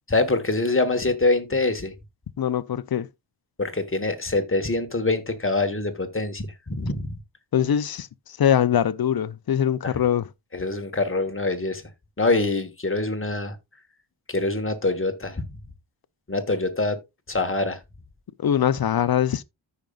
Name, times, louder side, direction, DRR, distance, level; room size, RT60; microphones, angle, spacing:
voice 1, 0.1-1.9 3.6-7.1 9.8-9.9 10.5-11.8 12.2-13.6 14.3-15.4 16.3-17.0 17.3-17.8, left 2 dB, 25° left, 1.4 m, -24 dB
voice 2, 2.4-3.1 7.5-10.3 18.4-19.4, left 9 dB, 50° left, 0.5 m, -22 dB
14.0 x 5.3 x 2.4 m
wide cardioid pair, 95°, 49 cm